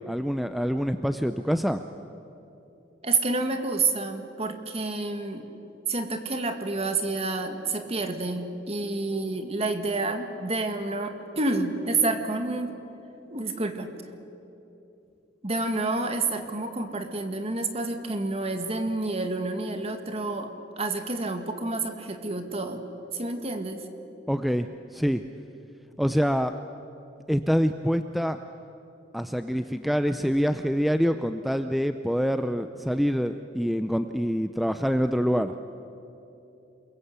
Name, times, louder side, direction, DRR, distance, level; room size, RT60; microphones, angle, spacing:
voice 1, 0.1-1.8 24.3-25.2 26.0-26.6 27.3-28.4 29.1-35.5, equal, ahead, 8 dB, 0.5 m, -26 dB
voice 2, 3.0-5.5 5.9-12.7 13.3-13.9 15.4-20.5 20.8-22.8 23.1-23.8, right 3 dB, 35° right, 6 dB, 2.0 m, -29 dB
28.0 x 22.5 x 8.2 m, 2.9 s
head